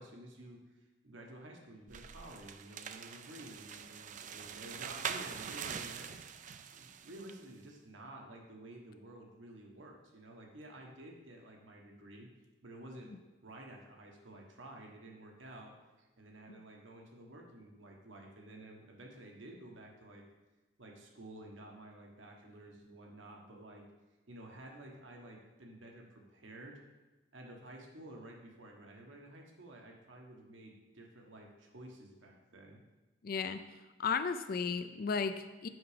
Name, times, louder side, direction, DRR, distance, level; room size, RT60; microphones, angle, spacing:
voice 1, 0.0-6.2 6.7-12.3 12.6-20.2 20.8-23.9 24.3-26.8 27.3-32.8, right 1 dB, 75° right, 1 dB, 1.3 m, -52 dB
sound 1, 1.9-7.4, right 7 dB, 40° right, 0.4 m, -44 dB
voice 2, 33.2-33.6 34.0-35.7, left 5 dB, 50° left, 10 dB, 0.4 m, -34 dB
7.9 x 5.8 x 5.1 m, 1.1 s
head